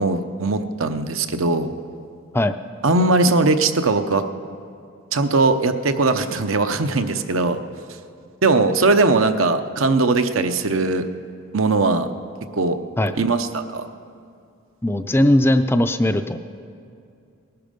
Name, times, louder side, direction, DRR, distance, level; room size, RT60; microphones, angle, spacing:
voice 1, 0.0-1.7 2.8-4.2 5.1-7.6 8.4-11.0 11.5-12.1 12.5-12.8 13.2-13.9, right 3 dB, 80° right, 8 dB, 0.8 m, -19 dB
voice 2, 14.8-16.4, left 1 dB, 10° left, 9 dB, 0.4 m, -18 dB
19.5 x 11.5 x 5.2 m, 2.5 s
head